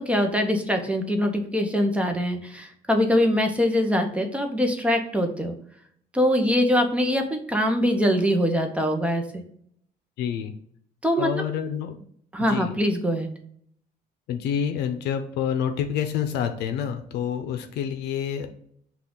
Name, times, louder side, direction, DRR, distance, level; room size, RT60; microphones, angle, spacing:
voice 1, 0.0-5.5 6.1-9.4 11.0-11.4 12.3-13.3, equal, 5° right, 4 dB, 0.7 m, -23 dB
voice 2, 10.2-10.5 11.2-12.0 12.4-12.7 14.3-18.5, left 8 dB, 80° left, 7 dB, 0.5 m, -28 dB
5.7 x 2.4 x 3.7 m, 0.64 s
cardioid pair, 110°, 17 cm